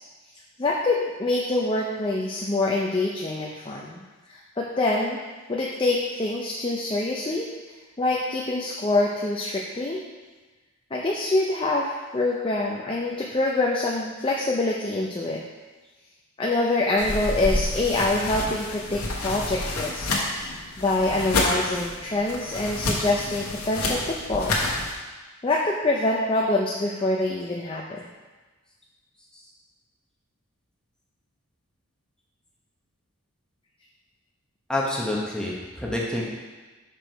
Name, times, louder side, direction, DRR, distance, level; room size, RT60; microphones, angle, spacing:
voice 1, 0.6-5.2 5.5-7.5 8.0-10.0 10.9-15.4 16.4-20.1 20.4-24.7 25.4-28.0, left 2 dB, 25° left, -3 dB, 0.5 m, -25 dB
sound 1, 17.0-24.9, left 2 dB, 80° left, 1.2 m, -29 dB
voice 2, 34.7-36.2, left 1 dB, 5° left, -4 dB, 1.0 m, -27 dB
6.0 x 5.0 x 4.5 m, 1.3 s
head